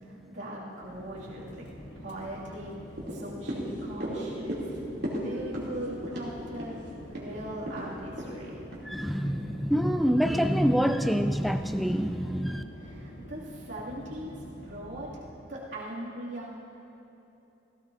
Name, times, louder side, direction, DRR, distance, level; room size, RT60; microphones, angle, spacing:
voice 1, 0.0-1.6 2.0-2.7 3.1-4.7 5.2-8.6 12.7-15.2 15.5-16.5, right 1 dB, 90° right, -7 dB, 2.5 m, -40 dB
sound 1, 0.8-15.2, left 1 dB, 75° left, 1.4 m, -46 dB
sound 2, 2.9-9.4 9.8-9.9, equal, 65° right, 2.9 m, -37 dB
voice 2, 8.9-12.6, equal, ahead, 8 dB, 0.4 m, -26 dB
17.0 x 16.0 x 2.7 m, 3.0 s
head